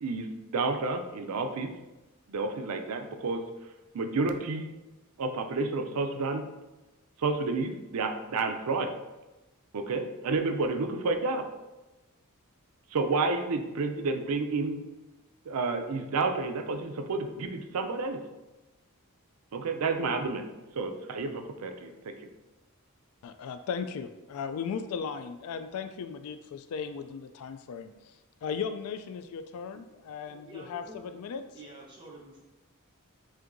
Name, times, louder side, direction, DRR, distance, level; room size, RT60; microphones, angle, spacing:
voice 1, 0.0-1.7 2.3-3.4 3.9-4.7 5.2-6.4 7.2-8.9 9.7-11.5 12.9-14.8 15.5-18.2 19.5-20.5 20.7-22.2, right 3 dB, 80° right, 7 dB, 0.5 m, -30 dB
voice 2, 23.2-27.9 28.4-31.4, left 6 dB, 75° left, 10 dB, 0.3 m, -36 dB
voice 3, 30.2-31.1 31.5-32.4, right 1 dB, 20° right, -3 dB, 1.0 m, -49 dB
7.5 x 2.6 x 2.6 m, 1.1 s
head